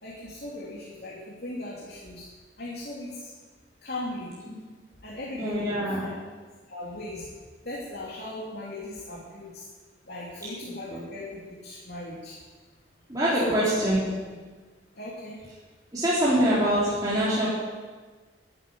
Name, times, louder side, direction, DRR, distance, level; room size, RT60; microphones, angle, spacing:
voice 1, 0.0-2.2 2.6-3.3 3.8-4.4 5.0-6.1 6.7-7.3 7.6-9.7 10.1-12.3 13.4-13.7 14.9-15.4, left 1 dB, 60° left, -5 dB, 2.9 m, -38 dB
voice 2, 5.4-6.0 13.1-14.0 15.9-17.5, right 1 dB, 20° right, -9 dB, 3.6 m, -24 dB
12.0 x 11.5 x 9.4 m, 1.4 s
head